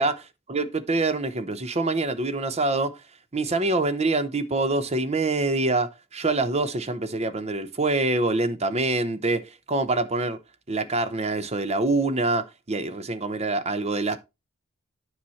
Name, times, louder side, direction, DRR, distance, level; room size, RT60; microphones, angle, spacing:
voice 1, 0.5-3.0 3.3-9.4 9.7-10.4 10.7-14.2, right 2 dB, 30° right, 0.8 m, -25 dB
9.3 x 5.7 x 4.2 m
head